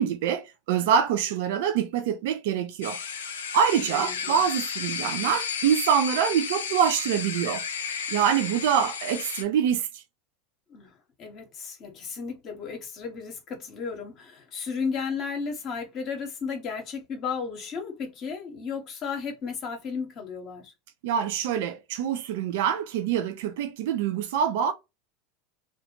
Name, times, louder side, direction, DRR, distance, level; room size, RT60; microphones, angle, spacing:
voice 1, 0.0-3.0 3.5-7.6 8.1-10.0 21.0-24.7, right 8 dB, 70° right, 0.4 m, -25 dB
sound 1, 2.8-9.4, left 6 dB, 85° left, 0.5 m, -33 dB
voice 2, 3.8-4.3 10.7-20.7, left 5 dB, 45° left, 0.9 m, -34 dB
2.5 x 2.2 x 2.8 m
hypercardioid pair, 90°, 0 cm